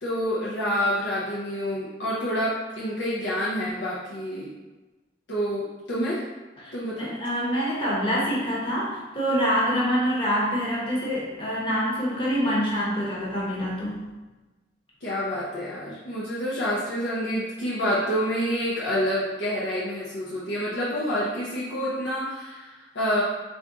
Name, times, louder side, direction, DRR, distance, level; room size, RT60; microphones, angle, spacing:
voice 1, 0.0-4.5 5.3-6.2 6.7-7.1 15.0-23.2, equal, 75° left, -7 dB, 0.7 m, -28 dB
voice 2, 6.6-14.0, equal, 25° left, -6 dB, 1.0 m, -26 dB
3.6 x 2.6 x 3.6 m, 1.2 s
head